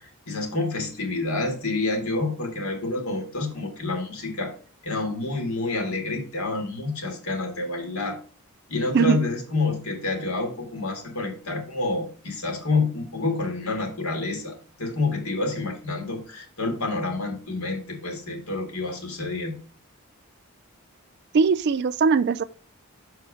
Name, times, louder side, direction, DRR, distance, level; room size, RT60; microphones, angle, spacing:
voice 1, 0.0-4.5 4.8-8.2 8.7-19.5, left 3 dB, 80° left, 2.0 m, -28 dB
voice 2, 8.9-9.2 21.3-22.4, right 5 dB, 50° right, 0.3 m, -20 dB
6.3 x 4.6 x 4.8 m
head